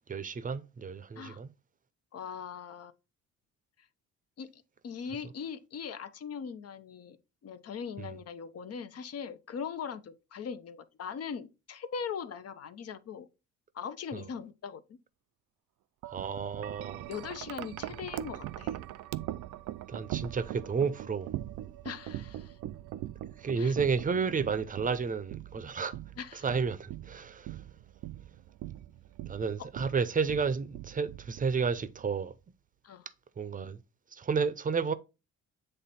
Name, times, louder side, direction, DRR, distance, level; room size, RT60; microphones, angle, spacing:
voice 1, 0.1-1.5 8.0-8.2 14.1-14.2 16.1-17.1 19.9-21.3 23.4-26.0 26.3-27.6 29.3-32.3 33.4-33.8 34.1-34.9, right 5 dB, 25° right, 0.6 m, -31 dB
voice 2, 2.1-2.9 4.4-7.2 7.4-13.3 13.7-15.0 17.1-18.8 21.8-22.6 23.6-23.7 26.2-26.4 32.8-33.1, left 6 dB, 55° left, 0.8 m, -40 dB
Wind chime, 16.0-32.2, right 14 dB, 80° right, 0.5 m, -41 dB
7.8 x 3.3 x 4.2 m
cardioid pair, 90°, 30 cm